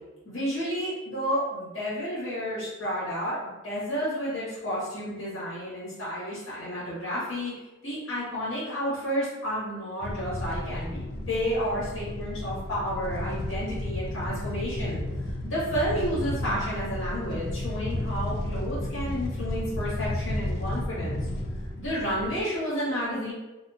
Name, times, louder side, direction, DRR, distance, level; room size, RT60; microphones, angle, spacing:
voice 1, 0.2-3.4 3.6-7.5 7.8-15.0 15.4-21.2 21.8-23.3, equal, 80° left, -9 dB, 1.2 m, -31 dB
sound 1, 10.0-22.4, left 1 dB, 55° left, 0.3 m, -32 dB
2.5 x 2.3 x 2.6 m, 1.1 s
head